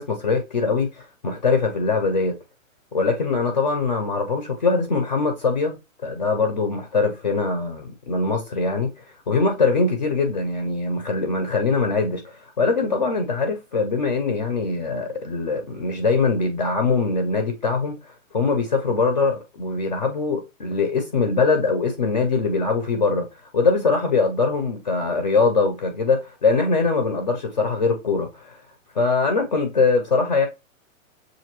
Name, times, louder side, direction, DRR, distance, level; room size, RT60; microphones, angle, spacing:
voice 1, 0.0-2.3 2.9-5.8 6.0-8.9 9.3-23.3 23.5-28.6 28.9-30.5, left 4 dB, 35° left, 0.5 m, -22 dB
6.7 x 2.6 x 2.9 m
hypercardioid pair, 180°, 40 cm